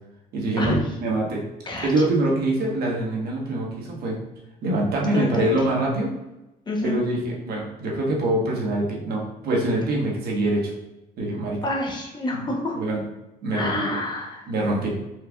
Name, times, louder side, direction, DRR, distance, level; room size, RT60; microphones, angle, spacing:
voice 1, 0.3-0.7 1.0-1.4 1.8-4.2 4.6-6.1 6.8-10.7 11.2-11.6 12.3-12.5 12.7-13.0 13.4-14.0 14.5-14.9, right 2 dB, 65° right, -2 dB, 1.2 m, -24 dB
voice 2, 5.1-5.5 6.7-7.0 11.6-12.8 13.5-14.5, left 2 dB, 25° left, -1 dB, 0.9 m, -27 dB
4.4 x 3.4 x 2.3 m, 0.97 s
cardioid pair, 110°, 17 cm